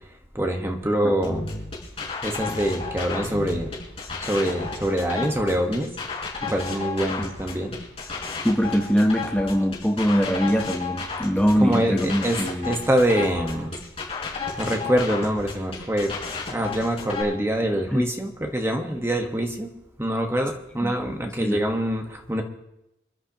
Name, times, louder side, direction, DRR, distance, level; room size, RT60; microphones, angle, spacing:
voice 1, 0.3-1.4 2.2-3.7 4.2-5.9 6.5-7.7 11.6-12.4 12.6-13.7 14.6-16.1 16.5-19.7 20.0-22.4, right 1 dB, 15° right, 3 dB, 1.2 m, -24 dB
sound 1, 1.2-17.2, left 4 dB, 30° left, 4.7 m, -33 dB
voice 2, 8.4-12.7 17.9-18.0 20.8-20.9 21.4-21.6, equal, 5° left, 1 dB, 0.9 m, -22 dB
27.0 x 11.0 x 2.9 m, 0.87 s
head